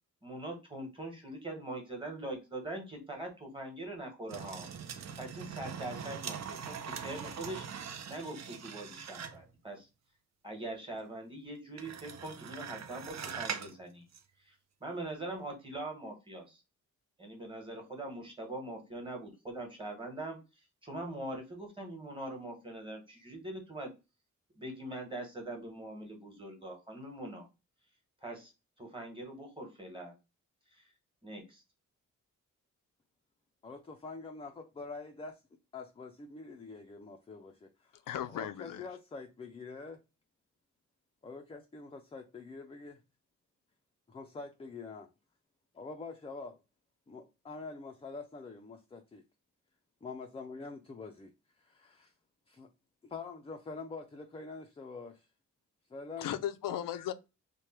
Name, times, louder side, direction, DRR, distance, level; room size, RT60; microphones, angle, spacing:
voice 1, 0.2-4.7 5.2-7.7 8.1-9.9 10.4-14.1 14.4-16.6 17.2-20.4 20.8-23.9 24.6-27.5 28.2-28.5 28.8-30.1 30.7-30.9 31.2-31.6, right 1 dB, 15° right, 1.3 m, -42 dB
sound 1, 4.3-9.5 11.8-13.8 14.1-14.2, right 7 dB, 55° right, 0.6 m, -42 dB
voice 2, 33.6-35.4 35.7-38.0 38.3-40.0 41.2-43.0 44.1-45.1 45.7-46.6 47.1-49.2 50.0-52.1 52.5-52.7 53.0-55.3 55.9-56.3 56.7-56.8, left 4 dB, 20° left, 0.4 m, -45 dB
voice 3, 38.1-38.9 56.2-57.1, left 11 dB, 85° left, 0.5 m, -36 dB
3.2 x 2.2 x 4.2 m
wide cardioid pair, 120°, 32 cm